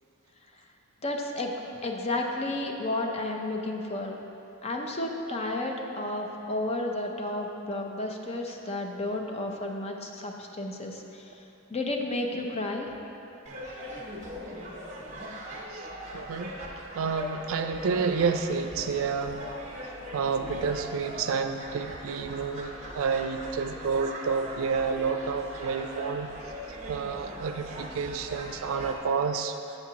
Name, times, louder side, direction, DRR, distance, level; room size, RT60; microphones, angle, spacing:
voice 1, 1.0-1.5 1.8-4.2 4.6-11.2 11.7-12.9, left 2 dB, 30° left, 2 dB, 0.6 m, -32 dB
sound 1, 13.5-29.0, equal, 40° right, 0.9 m, -40 dB
voice 2, 16.1-16.6 16.9-19.4 20.1-26.3 26.9-29.6, right 5 dB, 90° right, 7 dB, 0.4 m, -29 dB
7.8 x 7.1 x 2.8 m, 2.9 s
head